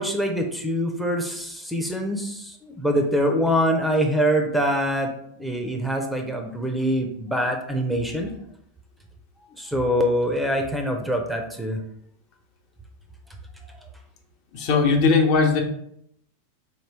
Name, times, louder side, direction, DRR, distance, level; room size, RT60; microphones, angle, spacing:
voice 1, 0.0-8.3 9.6-11.8, equal, 5° right, 3 dB, 0.5 m, -24 dB
voice 2, 14.5-15.6, left 4 dB, 50° left, 3 dB, 0.7 m, -19 dB
4.0 x 2.9 x 3.3 m, 0.71 s
supercardioid pair, 130°, 0 cm